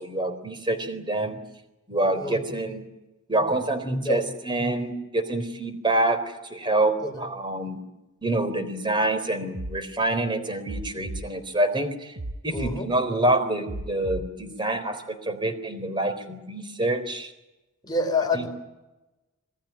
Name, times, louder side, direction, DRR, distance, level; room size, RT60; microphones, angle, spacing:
voice 1, 0.0-1.4 1.9-2.8 3.3-7.8 8.2-12.2 12.4-17.3 18.3-18.5, right 1 dB, 20° right, 10 dB, 3.9 m, -26 dB
sound 1, 9.5-9.7 10.6-11.2 12.1-12.7 13.6-14.2, right 2 dB, 50° right, 1.1 m, -34 dB
voice 2, 12.5-12.9 17.8-18.5, left 2 dB, 20° left, 3 dB, 5.0 m, -27 dB
27.0 x 19.0 x 9.0 m, 1.0 s
head